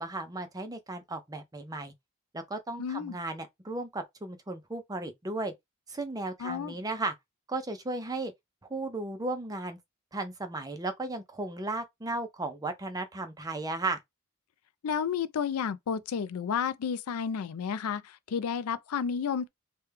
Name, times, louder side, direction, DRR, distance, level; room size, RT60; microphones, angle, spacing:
voice 1, 0.0-1.9 2.3-5.5 5.9-7.1 7.5-8.3 8.7-9.8 10.1-14.0, right 2 dB, 15° right, 0.5 m, -35 dB
voice 2, 2.8-3.2 6.4-6.7 14.8-19.5, left 7 dB, 80° left, 0.4 m, -31 dB
3.3 x 2.2 x 3.2 m
head